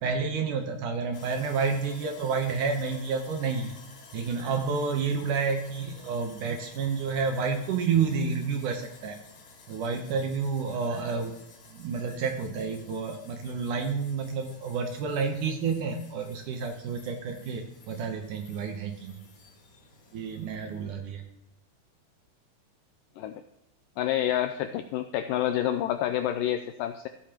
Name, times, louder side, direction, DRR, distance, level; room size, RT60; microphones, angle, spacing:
voice 1, 0.0-3.7 4.1-9.2 9.7-11.3 11.7-19.2 20.1-21.2, right 5 dB, 70° right, 4 dB, 2.1 m, -30 dB
Sawing, 1.1-21.0, left 4 dB, 65° left, 3.3 m, -53 dB
voice 2, 24.0-27.1, left 11 dB, 85° left, 9 dB, 1.9 m, -28 dB
15.0 x 9.1 x 2.9 m, 0.87 s
omnidirectional pair, 4.4 m